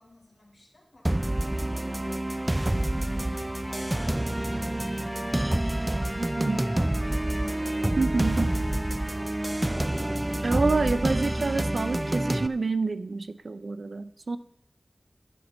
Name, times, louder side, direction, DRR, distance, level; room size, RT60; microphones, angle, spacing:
voice 1, 0.0-2.4 5.7-7.3 8.0-8.6 8.9-9.7, left 1 dB, 50° left, -3 dB, 4.9 m, -57 dB
sound 1, 1.0-12.5, right 1 dB, 25° right, 0.4 m, -28 dB
Trumpet, 2.6-10.3, left 1 dB, 15° left, 4.4 m, -44 dB
voice 2, 8.0-8.6 10.4-14.4, right 3 dB, 85° right, 14 dB, 0.5 m, -28 dB
11.0 x 11.0 x 4.3 m, 0.79 s
wide cardioid pair, 40°, 0 cm